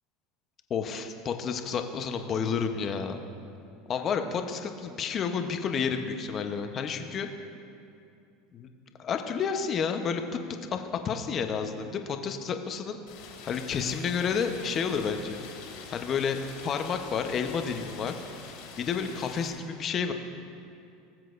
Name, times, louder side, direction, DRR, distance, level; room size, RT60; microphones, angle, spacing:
voice 1, 0.7-3.2 3.9-7.3 8.5-8.7 9.0-10.2 10.7-13.0 13.4-15.4 15.9-18.1 18.8-20.1, left 6 dB, 40° left, 6 dB, 0.9 m, -30 dB
Rain, 13.1-19.5, left 6 dB, 75° left, 2.7 m, -45 dB
19.5 x 7.6 x 2.6 m, 2.5 s
supercardioid pair, 100°, 0 cm